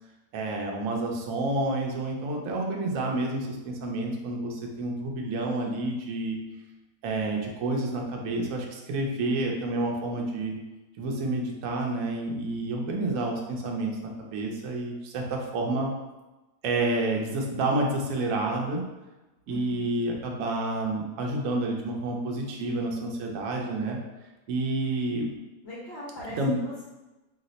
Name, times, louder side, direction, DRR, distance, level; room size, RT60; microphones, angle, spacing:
voice 1, 0.3-6.4 7.0-10.6 11.0-15.9 16.6-18.8 19.5-24.0 24.5-25.3 26.4-26.6, right 2 dB, 70° right, 0 dB, 0.8 m, -29 dB
voice 2, 19.5-19.9 25.6-26.8, left 1 dB, 50° left, -8 dB, 0.8 m, -40 dB
2.7 x 2.0 x 3.9 m, 1.1 s
omnidirectional pair, 1.7 m